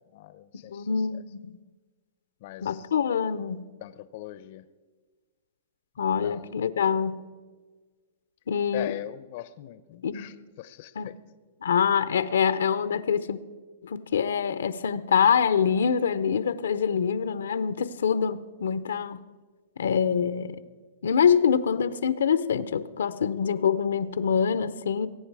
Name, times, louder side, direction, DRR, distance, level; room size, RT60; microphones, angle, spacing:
voice 1, 0.1-1.2 2.4-2.9 3.8-4.7 6.0-6.5 8.7-11.2, left 14 dB, 50° left, 0.6 m, -41 dB
voice 2, 0.7-1.5 2.6-3.6 6.0-7.2 8.5-8.9 10.0-10.2 11.0-11.1 11.6-13.4 13.8-19.2 19.8-20.6 21.0-25.1, left 7 dB, 90° left, 0.7 m, -25 dB
21.5 x 9.8 x 4.8 m
hypercardioid pair, 150°, 0 cm